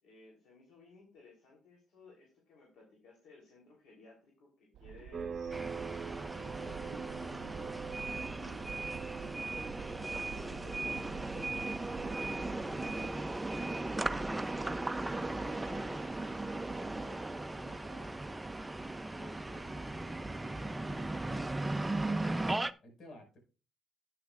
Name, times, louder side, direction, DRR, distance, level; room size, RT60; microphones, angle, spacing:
voice 1, 0.0-5.6 6.1-8.6 10.0-11.0 14.5-18.2 19.1-21.5, left 3 dB, 80° left, -2 dB, 3.5 m, -58 dB
sound 1, 4.7-13.1, right 10 dB, 80° right, 0.4 m, -49 dB
sound 2, 5.1-15.5, right 6 dB, 45° right, 1.1 m, -46 dB
sound 3, 5.5-22.7, right 2 dB, 15° right, 0.5 m, -37 dB
voice 2, 10.4-11.5 22.8-23.4, left 1 dB, 65° left, 2 dB, 5.4 m, -53 dB
11.5 x 9.8 x 2.5 m, 0.33 s
cardioid pair, 90°, 0 cm